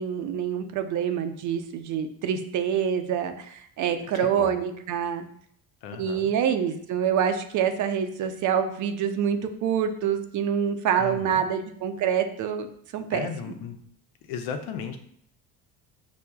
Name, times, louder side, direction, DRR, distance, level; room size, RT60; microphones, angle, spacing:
voice 1, 0.0-5.2 6.0-12.7 12.9-13.3, right 8 dB, 55° right, 8 dB, 0.5 m, -26 dB
voice 2, 4.0-4.6 5.8-6.3 11.0-11.5 13.1-13.8 14.2-15.0, left 6 dB, 90° left, 6 dB, 0.6 m, -35 dB
5.8 x 2.0 x 2.3 m, 0.66 s
cardioid pair, 105°, 36 cm